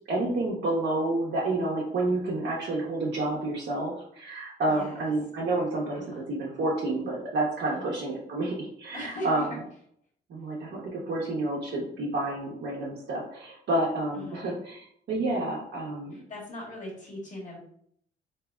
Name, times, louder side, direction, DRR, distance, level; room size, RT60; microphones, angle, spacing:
voice 1, 0.1-6.0 6.3-9.5 10.3-16.1, right 2 dB, 60° right, -4 dB, 0.8 m, -29 dB
voice 2, 4.6-5.0 5.9-6.2 7.7-7.9 8.9-9.5 14.2-14.5 16.1-17.6, left 1 dB, 40° left, -4 dB, 1.4 m, -39 dB
3.3 x 2.8 x 2.3 m, 0.67 s
cardioid pair, 90°, 20 cm